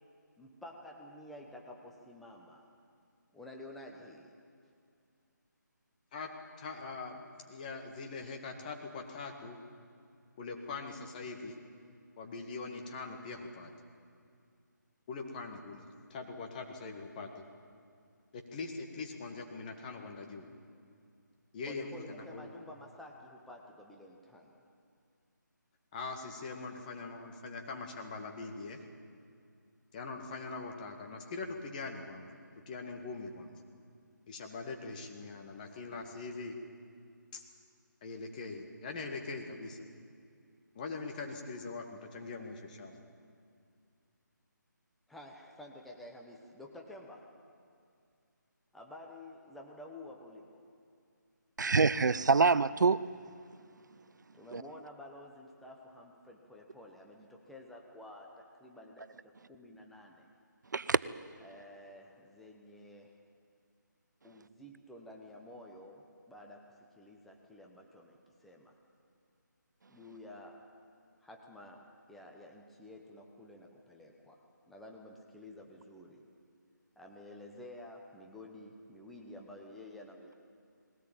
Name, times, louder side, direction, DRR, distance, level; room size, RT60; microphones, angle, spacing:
voice 1, 0.4-2.7 3.3-4.3 21.7-24.6 45.1-47.3 48.7-50.7 54.3-60.3 61.4-63.2 64.2-68.8 69.9-70.6 71.2-76.2 77.0-80.3, left 1 dB, ahead, 0 dB, 1.0 m, -51 dB
voice 2, 6.6-9.6 10.4-11.6 12.2-13.7 15.1-15.8 16.1-17.4 18.3-20.5 21.5-22.5 25.9-28.8 29.9-32.3 32.7-33.5 34.3-36.5 37.3-37.4 38.0-39.8 40.8-43.0, left 3 dB, 25° left, 3 dB, 1.9 m, -42 dB
voice 3, 51.6-53.0 54.5-54.6 60.7-61.0, right 4 dB, 65° right, 16 dB, 0.6 m, -25 dB
20.0 x 18.5 x 8.9 m, 2.3 s
figure-of-eight pair, 160°, 10 cm